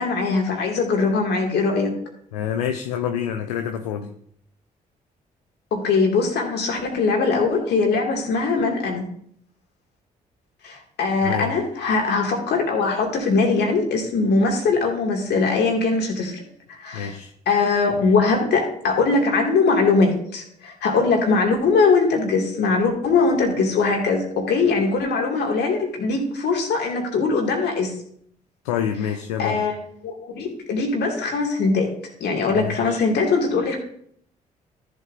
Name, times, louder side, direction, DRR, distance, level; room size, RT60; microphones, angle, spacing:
voice 1, 0.0-1.9 5.7-9.1 10.6-16.4 16.7-17.1 17.5-27.9 29.4-29.8 30.0-31.9 32.2-33.8, left 4 dB, 60° left, 1 dB, 2.4 m, -21 dB
voice 2, 2.3-4.1 11.2-11.6 16.9-17.3 28.6-29.7 32.5-33.0, left 8 dB, 80° left, 5 dB, 0.6 m, -27 dB
13.5 x 7.8 x 2.7 m, 0.65 s
hypercardioid pair, 45°, 19 cm